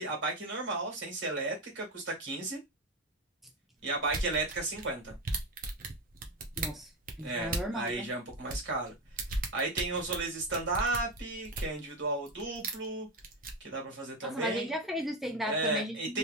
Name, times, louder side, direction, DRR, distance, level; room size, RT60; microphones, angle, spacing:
voice 1, 0.0-2.6 3.8-5.1 7.2-8.9 9.5-13.1 13.6-14.7 15.5-16.2, right 2 dB, 75° right, 1.9 m, -34 dB
sound 1, 4.1-7.9 8.3-11.8 12.3-12.8 13.2-13.5, right 2 dB, 50° right, 0.7 m, -36 dB
voice 2, 6.6-6.9 7.2-8.1 14.2-16.2, equal, ahead, 0.4 m, -35 dB
3.2 x 2.7 x 2.6 m
head